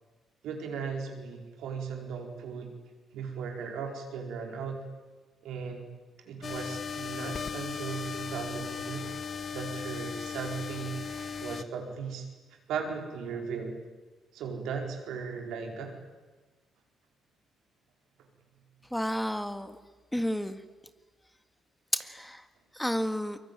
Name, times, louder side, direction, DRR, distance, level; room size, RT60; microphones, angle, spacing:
voice 1, 0.4-2.8 3.1-4.8 5.4-5.9 6.2-9.1 9.5-11.0 11.4-12.3 12.7-13.7 14.3-16.0, right 6 dB, 75° right, 2 dB, 4.7 m, -37 dB
sound 1, 6.4-11.6, left 6 dB, 50° left, 1.3 m, -37 dB
voice 2, 18.9-19.8 20.1-20.6 21.9-22.4 22.7-23.4, equal, 5° left, 9 dB, 1.9 m, -31 dB
23.5 x 23.0 x 9.1 m, 1.3 s
hypercardioid pair, 50°, 0 cm